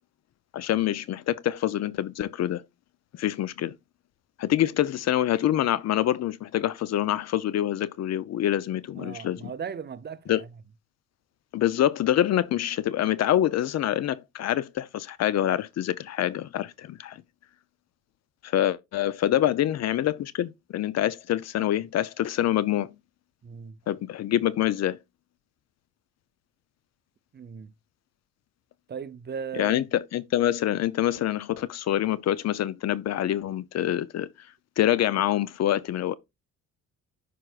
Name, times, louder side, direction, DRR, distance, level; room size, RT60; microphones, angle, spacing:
voice 1, 0.5-2.6 3.2-3.7 4.4-9.5 10.3-10.4 11.5-17.2 18.4-22.9 23.9-25.0 29.6-34.3 34.8-36.1, left 12 dB, 60° left, 0.5 m, -26 dB
voice 2, 8.9-10.6 23.4-23.8 27.3-27.7 28.9-29.9, right 7 dB, 35° right, 0.6 m, -37 dB
11.0 x 4.6 x 2.4 m
cardioid pair, 90°, 30 cm